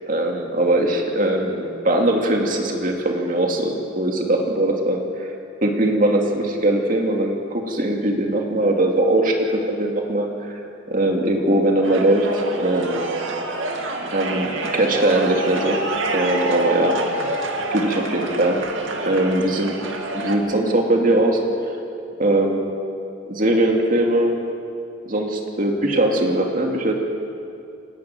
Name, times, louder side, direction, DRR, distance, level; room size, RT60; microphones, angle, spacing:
voice 1, 0.1-5.3 5.6-10.6 10.9-13.1 14.1-15.8 16.1-17.0 17.7-18.6 19.0-19.8 20.1-21.4 22.2-22.6 23.3-24.4 25.0-26.9, right 1 dB, 45° right, 1 dB, 2.6 m, -20 dB
sound 1, 11.8-20.4, right 2 dB, 75° right, 2.4 m, -27 dB
28.0 x 11.5 x 9.2 m, 2.5 s
head